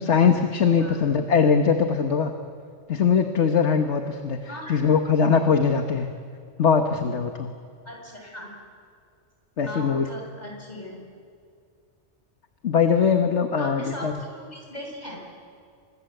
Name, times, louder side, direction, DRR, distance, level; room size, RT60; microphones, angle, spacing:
voice 1, 0.0-2.3 2.9-6.1 6.6-7.5 9.6-10.1 12.6-14.2, left 6 dB, 75° left, 5 dB, 1.6 m, -21 dB
voice 2, 7.9-8.5 9.6-11.0 13.6-15.2, left 1 dB, 35° left, 0 dB, 7.1 m, -38 dB
29.0 x 25.5 x 8.0 m, 2.2 s
omnidirectional pair, 1.2 m